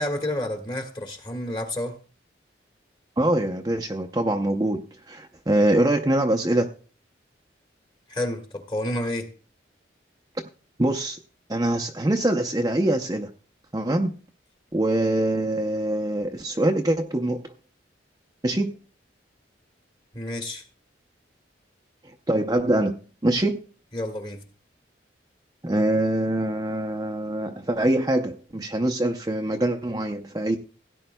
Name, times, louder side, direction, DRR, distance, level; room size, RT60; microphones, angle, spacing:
voice 1, 0.0-2.0 8.1-9.3 20.1-20.6 23.9-24.4, left 1 dB, 25° left, 1.5 m, -29 dB
voice 2, 3.2-6.7 10.8-11.2 11.5-13.3 13.7-14.1 14.7-17.4 18.4-18.8 22.3-23.6 25.6-30.6, right 1 dB, 20° right, 0.6 m, -24 dB
16.5 x 9.9 x 2.2 m
head